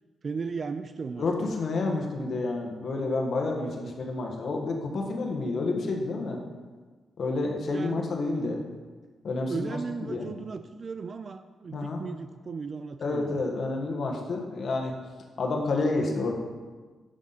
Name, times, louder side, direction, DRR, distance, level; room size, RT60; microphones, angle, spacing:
voice 1, 0.2-1.5 3.6-4.0 7.7-8.2 9.5-13.4, right 5 dB, 40° right, 10 dB, 0.3 m, -36 dB
voice 2, 1.2-6.4 7.2-8.6 9.2-10.3 11.7-12.0 13.0-14.9 15.4-16.3, left 3 dB, 60° left, 1 dB, 1.5 m, -29 dB
11.5 x 6.1 x 4.2 m, 1.4 s
cardioid pair, 110°, 0 cm